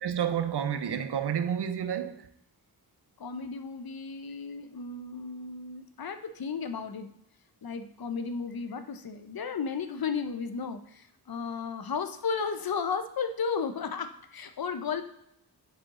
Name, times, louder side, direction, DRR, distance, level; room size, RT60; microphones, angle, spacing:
voice 1, 0.0-2.3, right 8 dB, 80° right, 0.6 m, -30 dB
voice 2, 3.2-7.1 7.6-15.0, left 5 dB, 65° left, 0.7 m, -34 dB
8.6 x 4.4 x 3.7 m
wide cardioid pair, 70°, 40 cm